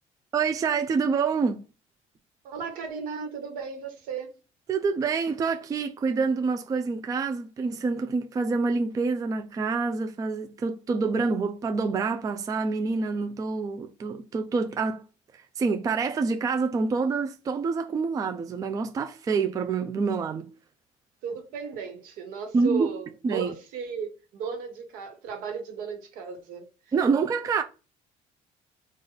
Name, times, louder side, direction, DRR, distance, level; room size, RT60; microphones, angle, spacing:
voice 1, 0.3-1.6 4.7-15.0 15.3-20.5 22.5-22.9 23.2-23.6 26.9-27.6, right 4 dB, 25° right, 0.4 m, -27 dB
voice 2, 2.4-4.3 21.2-26.7, right 6 dB, 80° right, 1.3 m, -35 dB
3.9 x 2.4 x 3.9 m
cardioid pair, 130°, 14 cm